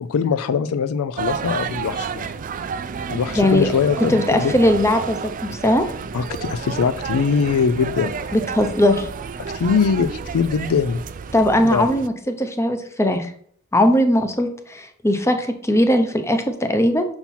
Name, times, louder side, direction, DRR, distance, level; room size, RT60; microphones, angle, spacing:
voice 1, 0.0-2.3 3.1-4.5 6.1-8.3 9.5-11.1 11.7-11.9, left 6 dB, 70° left, 12 dB, 0.4 m, -22 dB
sound 1, 1.2-12.1, right 6 dB, 35° right, 0.4 m, -30 dB
voice 2, 3.3-3.7 4.0-5.8 8.3-9.1 11.3-13.3 13.7-17.0, left 1 dB, 10° left, 6 dB, 0.7 m, -19 dB
5.7 x 4.4 x 5.6 m, 0.62 s
head